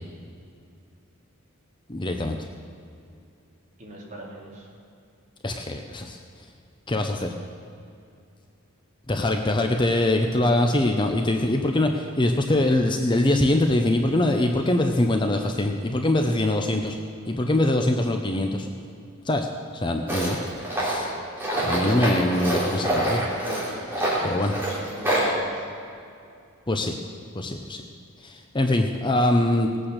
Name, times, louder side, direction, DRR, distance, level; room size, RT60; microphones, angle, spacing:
voice 1, 1.9-2.4 5.4-6.2 6.9-7.3 9.1-17.0 17.3-18.7 19.3-19.5 19.7-20.4 20.8-21.1 21.6-23.2 24.2-24.5 26.7-26.9 27.3-27.8 28.2-29.7, left 1 dB, 20° left, 4 dB, 0.7 m, -23 dB
voice 2, 3.8-4.7 24.1-25.7, right 1 dB, 35° right, -3 dB, 2.9 m, -42 dB
Tools, 20.1-25.3, right 1 dB, 10° right, 3.3 m, -26 dB
18.5 x 8.8 x 6.6 m, 2.5 s
head